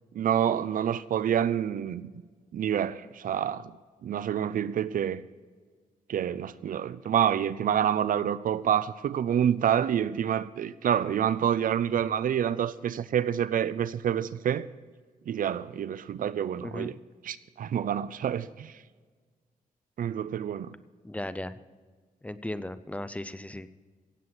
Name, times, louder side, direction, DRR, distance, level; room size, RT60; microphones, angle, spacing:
voice 1, 0.1-2.1 2.5-3.7 4.0-5.2 6.1-14.7 15.3-16.9 17.2-18.7 20.0-20.7, right 9 dB, 70° right, 16 dB, 0.6 m, -27 dB
voice 2, 16.6-16.9 21.0-21.6 22.2-23.8, left 1 dB, 10° left, 13 dB, 0.6 m, -36 dB
17.0 x 8.0 x 6.0 m, 1.5 s
cardioid pair, 115°, 15 cm